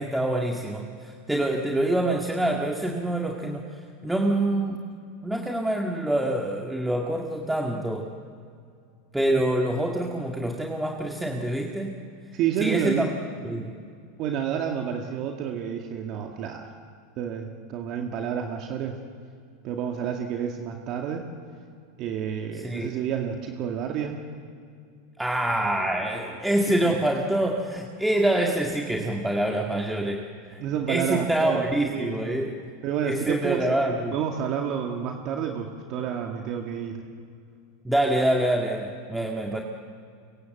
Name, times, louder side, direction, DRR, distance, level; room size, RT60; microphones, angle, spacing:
voice 1, 0.0-3.7 4.0-4.8 5.2-8.1 9.1-11.9 12.6-13.1 13.4-13.8 22.5-23.0 25.2-30.6 30.9-32.6 33.0-34.2 37.8-39.6, right 1 dB, 5° right, 1 dB, 2.0 m, -26 dB
voice 2, 12.3-13.1 14.2-16.7 17.2-19.0 19.6-21.3 22.0-24.3 26.8-26.9 30.6-31.6 31.9-32.4 32.8-33.7 34.1-37.0, right 8 dB, 50° right, 3 dB, 2.2 m, -29 dB
24.5 x 24.0 x 7.8 m, 2.3 s
hypercardioid pair, 105°, 0 cm